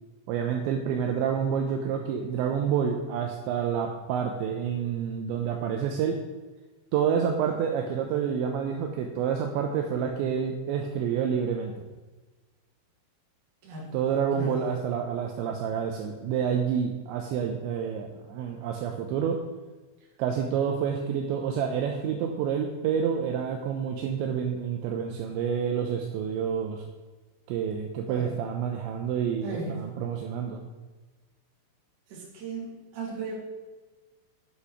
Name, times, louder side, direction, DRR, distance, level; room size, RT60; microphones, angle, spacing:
voice 1, 0.3-6.2 6.9-11.7 13.9-19.4 20.2-26.8 27.5-30.6, right 7 dB, 85° right, 3 dB, 2.6 m, -28 dB
voice 2, 13.6-14.0 14.3-14.6 28.1-28.3 29.4-29.8 32.1-33.3, right 3 dB, 45° right, -5 dB, 3.6 m, -36 dB
8.4 x 8.3 x 4.9 m, 1.3 s
omnidirectional pair, 5.9 m